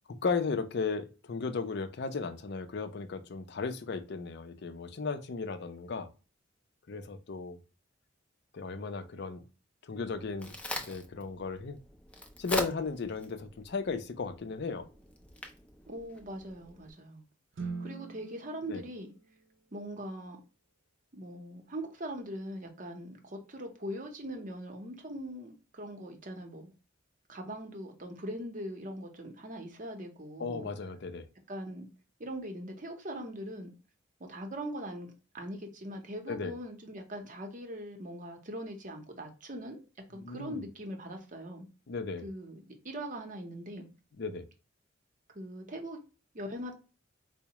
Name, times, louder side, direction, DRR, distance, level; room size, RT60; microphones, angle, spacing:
voice 1, 0.2-6.1 6.9-7.6 8.5-9.4 9.8-10.5 10.9-11.8 12.4-14.9 18.7-18.8 30.4-31.3 36.3-36.5 40.2-40.6 41.9-42.3 44.2-44.5, left 4 dB, 60° left, 0.5 m, -35 dB
Crack, 10.0-16.9, left 1 dB, 5° left, 0.4 m, -41 dB
voice 2, 15.9-17.2 17.6-19.1 19.7-20.4 21.1-26.7 27.3-30.7 31.5-31.9 32.2-33.7 34.2-39.8 40.1-41.7 42.2-42.6 42.8-43.9 45.3-46.0 46.3-46.7, equal, 45° right, 0.8 m, -41 dB
sound 1, 17.5-20.0, right 4 dB, 75° right, 0.5 m, -43 dB
4.6 x 2.1 x 2.9 m
head